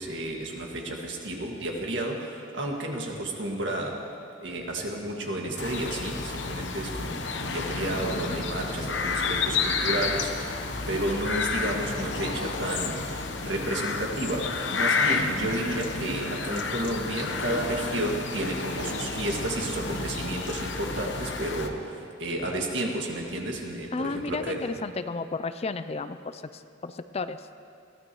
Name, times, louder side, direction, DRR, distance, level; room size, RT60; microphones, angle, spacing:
voice 1, 0.0-4.0 4.4-24.6, right 1 dB, 70° right, 0 dB, 2.0 m, -32 dB
Ambi - Scottish Coast, 5.6-21.7, left 4 dB, 70° left, 1.0 m, -30 dB
voice 2, 23.9-27.5, left 3 dB, 35° left, 11 dB, 0.4 m, -33 dB
22.0 x 16.0 x 3.1 m, 2.4 s
head